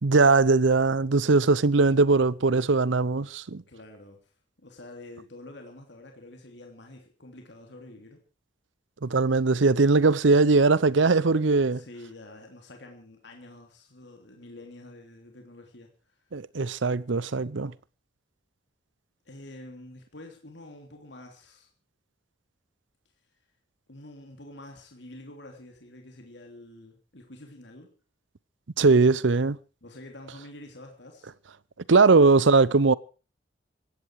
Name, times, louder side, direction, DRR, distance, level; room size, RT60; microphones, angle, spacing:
voice 1, 0.0-3.6 9.0-11.8 16.3-17.7 28.8-29.6 31.9-32.9, right 3 dB, 80° right, 0.7 m, -20 dB
voice 2, 3.7-4.3 4.6-8.2 11.7-16.2 19.2-21.7 23.9-27.9 29.8-31.3, left 1 dB, 65° left, 3.1 m, -47 dB
17.5 x 15.5 x 4.8 m
head